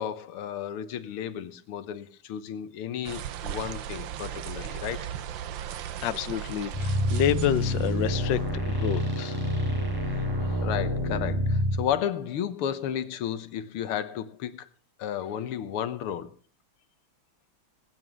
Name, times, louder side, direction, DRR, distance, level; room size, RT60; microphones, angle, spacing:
voice 1, 0.0-5.1 10.0-10.3 10.6-14.7 15.0-16.3, left 9 dB, 90° left, 1.9 m, -33 dB
sound 1, 3.0-8.5, right 10 dB, 65° right, 1.5 m, -37 dB
voice 2, 6.0-8.4 8.7-9.4, left 10 dB, 65° left, 1.4 m, -28 dB
sound 2, 6.7-11.8, equal, 10° right, 5.7 m, -27 dB
19.5 x 9.1 x 6.2 m
omnidirectional pair, 2.3 m